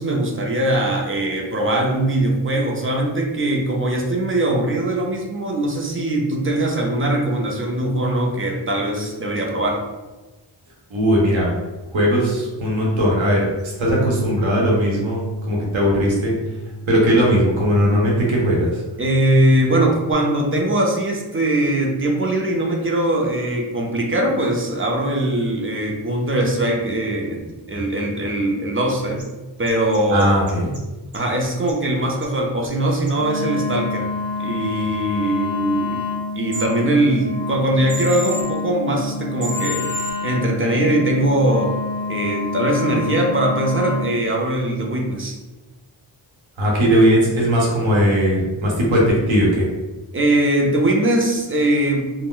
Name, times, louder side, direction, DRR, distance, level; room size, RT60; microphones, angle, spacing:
voice 1, 0.0-9.8 19.0-29.2 29.6-30.3 31.1-34.1 34.4-39.9 40.2-41.7 42.1-45.4 50.1-52.3, right 1 dB, 30° right, 0 dB, 0.4 m, -21 dB
voice 2, 10.9-11.5 11.9-16.3 16.9-18.8 30.1-30.7 46.6-49.7, equal, 80° right, -3 dB, 0.8 m, -18 dB
Bass guitar, 13.9-20.1, right 3 dB, 80° left, 0.6 m, -33 dB
sound 1, 29.2-29.3 29.7-30.8 31.1-31.7 32.2-32.3 32.6-32.7 33.1-33.2 36.5-36.6 37.9-38.4 39.4-40.1, equal, 50° right, 0.9 m, -30 dB
Wind instrument woodwind instrument, 33.1-44.2, left 3 dB, 35° left, 0.4 m, -28 dB
2.3 x 2.0 x 3.7 m, 1.2 s
wide cardioid pair, 110°, 47 cm